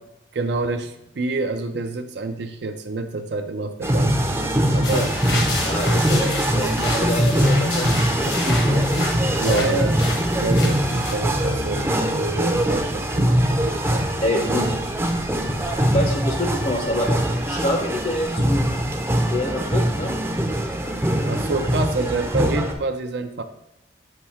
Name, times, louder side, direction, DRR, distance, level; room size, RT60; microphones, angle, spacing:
voice 1, 0.3-5.1 9.4-10.0 10.4-14.1 21.2-23.4, right 3 dB, 65° right, 7 dB, 0.4 m, -28 dB
sound 1, 3.8-22.7, equal, 15° right, 0.5 m, -22 dB
voice 2, 4.7-5.1 5.6-8.8 9.4-9.9 14.2-14.7 15.8-17.1 17.4-18.7 19.3-20.1, left 1 dB, 35° left, 2 dB, 0.5 m, -26 dB
sound 2, 4.8-11.1, left 3 dB, 70° left, 1.0 m, -30 dB
6.8 x 2.7 x 5.6 m, 0.87 s
head